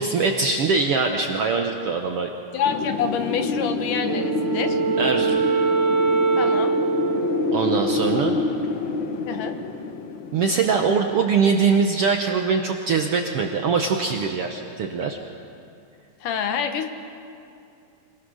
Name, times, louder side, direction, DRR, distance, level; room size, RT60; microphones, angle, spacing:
voice 1, 0.0-2.3 5.0-5.4 7.5-8.3 10.3-15.2, right 5 dB, 65° right, 3 dB, 1.4 m, -22 dB
voice 2, 2.5-4.8 6.4-6.7 9.3-9.5 16.2-16.9, left 7 dB, 75° left, 7 dB, 2.7 m, -27 dB
Wind, 2.7-11.4, left 3 dB, 60° left, 1.3 m, -27 dB
Wind instrument woodwind instrument, 4.0-8.5, right 5 dB, 45° right, 1.5 m, -23 dB
26.5 x 18.5 x 6.4 m, 2.5 s
omnidirectional pair, 3.8 m